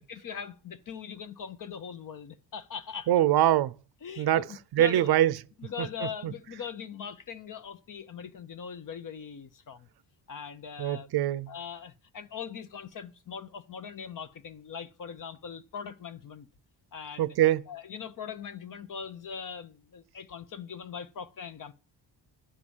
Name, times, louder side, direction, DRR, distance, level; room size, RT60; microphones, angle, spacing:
voice 1, 0.0-3.1 4.0-5.2 5.6-9.9 10.3-11.1 11.5-16.5 16.9-17.4 17.7-21.7, left 7 dB, 45° left, 0.9 m, -41 dB
voice 2, 3.1-3.7 4.2-4.4 4.7-5.3 5.8-5.9 6.2-6.3 10.8-11.5 17.2-17.6, right 13 dB, 60° right, 0.6 m, -23 dB
11.5 x 4.9 x 7.1 m
cardioid pair, 115°, 45 cm